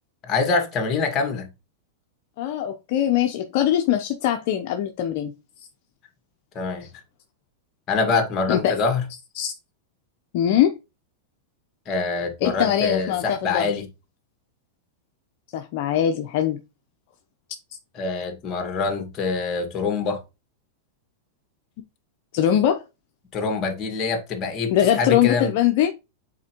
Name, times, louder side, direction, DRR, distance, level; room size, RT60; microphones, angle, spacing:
voice 1, 0.2-1.5 6.6-6.9 7.9-9.0 11.9-13.9 18.0-20.2 23.3-25.5, left 4 dB, 35° left, 1.8 m, -25 dB
voice 2, 2.4-5.3 6.8-6.9 8.5-8.8 9.4-9.5 10.3-10.8 12.4-13.7 15.5-16.6 22.3-22.8 24.7-25.9, left 10 dB, 60° left, 0.7 m, -22 dB
7.3 x 4.4 x 3.0 m
hypercardioid pair, 115°, 0 cm